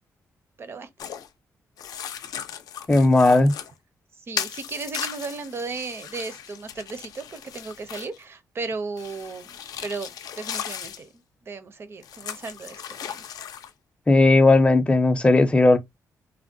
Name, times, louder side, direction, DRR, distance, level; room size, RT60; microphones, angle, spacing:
voice 1, 0.6-0.9 4.3-9.5 9.8-10.1 10.4-11.1 11.5-13.2, right 4 dB, 40° right, 0.5 m, -35 dB
sound 1, 1.0-1.3 1.8-3.7 4.4-8.2 9.0-11.0 12.0-13.7, left 9 dB, 85° left, 0.4 m, -36 dB
voice 2, 2.9-3.5 14.1-15.8, left 2 dB, 20° left, 0.5 m, -16 dB
3.4 x 2.1 x 2.5 m
wide cardioid pair, 145°, 6 cm